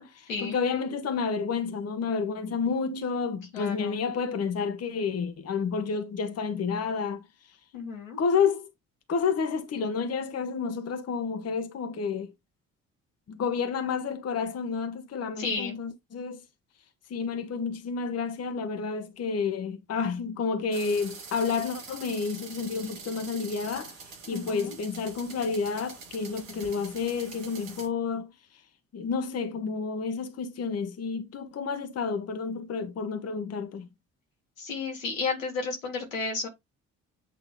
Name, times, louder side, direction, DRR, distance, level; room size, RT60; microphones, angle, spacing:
voice 1, 0.0-7.6 8.2-8.7 9.1-12.3 13.3-16.4 17.1-28.6 28.9-33.9, left 5 dB, 40° left, 1.1 m, -30 dB
voice 2, 3.5-4.0 7.7-8.2 15.4-15.8 24.3-24.8 34.6-36.5, left 4 dB, 85° left, 2.0 m, -32 dB
sound 1, 20.7-27.9, right 5 dB, 85° right, 1.4 m, -45 dB
8.4 x 3.4 x 3.6 m
hypercardioid pair, 45°, 38 cm